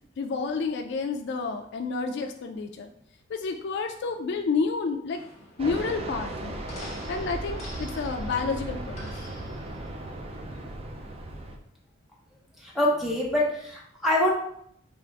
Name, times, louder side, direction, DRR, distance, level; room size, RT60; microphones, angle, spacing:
voice 1, 0.2-2.9 3.3-5.2 5.6-6.6 7.1-9.1, left 4 dB, 55° left, 5 dB, 0.3 m, -30 dB
sound 1, 5.1-10.4, left 1 dB, 35° left, 1.0 m, -47 dB
Fixed-wing aircraft airplane, 5.6-11.6, right 1 dB, 30° right, 0.4 m, -36 dB
voice 2, 12.6-14.3, left 1 dB, ahead, -4 dB, 0.9 m, -25 dB
3.5 x 2.5 x 4.6 m, 0.69 s
head